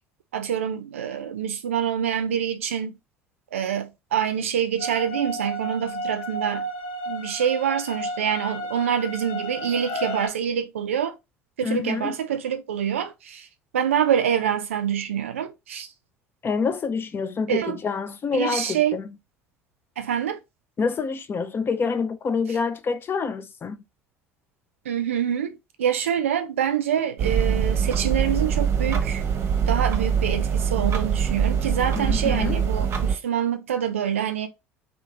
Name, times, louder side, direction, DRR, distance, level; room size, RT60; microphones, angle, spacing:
voice 1, 0.3-2.9 3.5-6.7 7.1-11.2 11.6-13.5 13.7-15.9 17.5-17.8 18.3-19.0 20.0-20.4 24.9-29.2 29.7-34.5, right 9 dB, 80° right, 0.5 m, -26 dB
sound 1, 4.8-10.3, equal, 65° left, 0.9 m, -33 dB
voice 2, 11.6-12.2 16.4-19.0 20.8-23.8 32.0-32.6, left 5 dB, 30° left, 0.5 m, -27 dB
sound 2, 27.2-33.2, right 7 dB, 40° right, 0.8 m, -23 dB
2.9 x 2.4 x 3.7 m
figure-of-eight pair, 65°, 7 cm